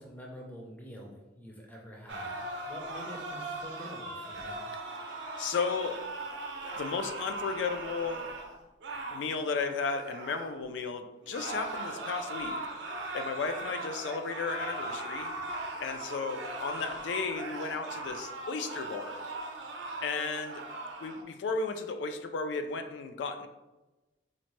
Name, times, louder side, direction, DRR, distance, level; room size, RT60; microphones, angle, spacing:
voice 1, 0.0-2.4 2.7-4.6, equal, 10° left, -2 dB, 0.4 m, -46 dB
sound 1, 2.1-10.6 11.3-21.2, right 2 dB, 90° right, 0.5 m, -39 dB
voice 2, 4.7-6.0 6.7-8.3 9.1-12.9 13.1-15.3 15.8-19.2 20.0-20.6 21.0-23.5, left 4 dB, 85° left, 7 dB, 0.3 m, -34 dB
3.9 x 2.1 x 3.0 m, 1.1 s
head